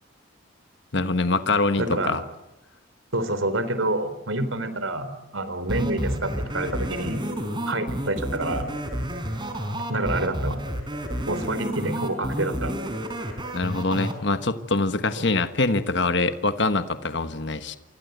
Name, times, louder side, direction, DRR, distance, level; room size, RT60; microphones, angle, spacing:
voice 1, 0.9-2.2 13.5-17.8, left 3 dB, 60° left, 10 dB, 1.4 m, -24 dB
voice 2, 1.8-2.2 3.1-7.2 7.7-8.7 9.9-10.6 11.3-12.8 15.2-15.3, right 2 dB, 80° right, 12 dB, 3.9 m, -27 dB
sound 1, 5.7-14.1, equal, 25° right, 4.6 m, -30 dB
28.5 x 25.0 x 8.1 m, 0.96 s
head